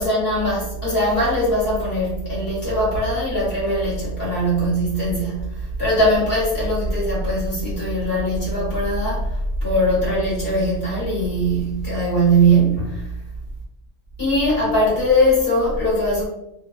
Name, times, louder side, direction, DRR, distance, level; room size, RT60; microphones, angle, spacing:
voice 1, 0.0-13.1 14.2-16.3, equal, 55° left, -7 dB, 1.4 m, -20 dB
2.9 x 2.2 x 2.3 m, 0.82 s
omnidirectional pair, 1.2 m